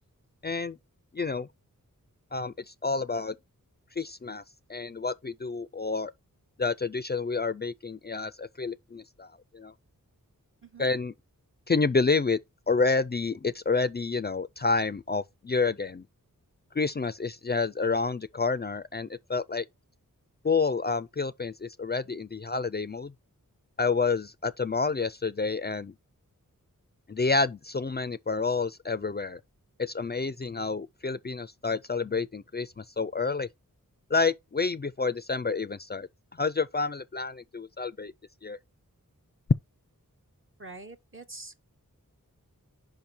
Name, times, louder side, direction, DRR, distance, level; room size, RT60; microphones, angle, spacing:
voice 1, 0.4-0.8 1.1-1.5 2.3-3.3 4.0-4.4 4.7-6.1 6.6-9.7 10.8-11.1 11.7-12.4 12.7-16.0 16.7-19.6 20.4-23.1 23.8-25.9 27.1-29.4 29.8-33.5 34.1-36.1 36.4-38.1 38.4-38.6, left 4 dB, 30° left, 0.4 m, -29 dB
voice 2, 40.6-41.6, right 3 dB, 35° right, 0.8 m, -45 dB
5.4 x 5.3 x 4.4 m
wide cardioid pair, 65°, 34 cm